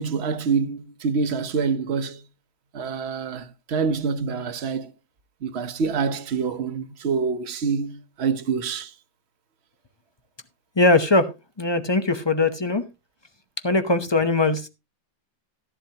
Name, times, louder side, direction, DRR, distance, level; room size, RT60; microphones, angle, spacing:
voice 1, 0.0-2.2 2.7-4.9 5.4-8.9, right 5 dB, 45° right, 1.0 m, -26 dB
voice 2, 10.8-11.3 11.6-12.8 13.6-14.7, left 2 dB, 40° left, 0.3 m, -20 dB
14.0 x 11.0 x 2.9 m
omnidirectional pair, 1.9 m